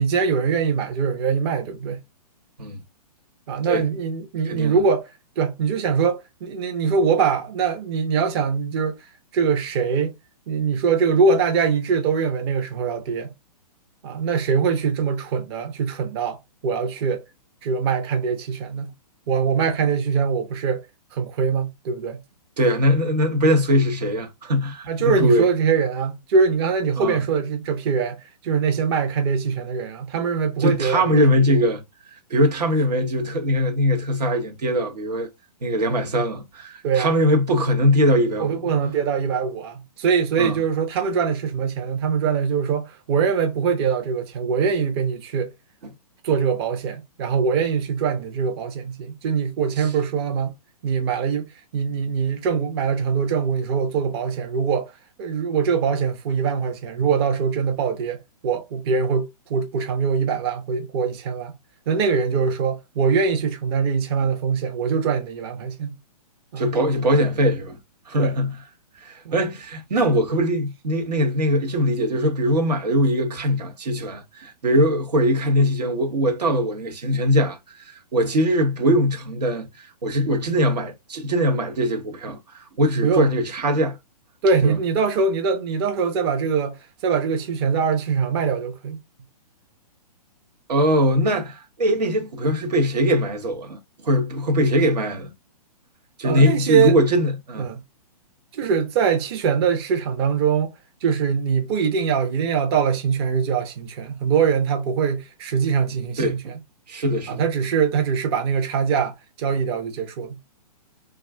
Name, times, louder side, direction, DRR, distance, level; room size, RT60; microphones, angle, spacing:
voice 1, 0.0-2.0 3.5-5.0 5.4-9.0 9.3-10.1 10.5-13.3 14.0-17.2 17.6-18.9 19.3-20.9 21.1-22.2 24.9-31.2 31.5-31.6 36.8-37.2 38.4-45.5 46.2-50.5 50.8-51.5 51.7-54.9 55.2-61.5 61.9-66.0 66.5-66.6 68.2-68.3 69.2-69.4 83.0-83.3 84.4-86.8 87.0-89.0 96.2-96.9 97.6-97.8 98.5-100.7 101.0-106.4 107.3-110.4, right 6 dB, 40° right, 0.6 m, -23 dB
voice 2, 4.4-4.8 22.6-25.5 27.0-27.2 30.6-31.8 32.3-35.3 35.6-38.6 40.4-40.6 49.8-49.9 66.6-67.8 68.1-68.5 69.0-84.0 84.6-84.8 90.7-95.3 96.2-97.7 106.2-106.4 106.9-107.4, equal, 80° right, 0.9 m, -21 dB
2.4 x 2.3 x 3.3 m
hypercardioid pair, 135°, 21 cm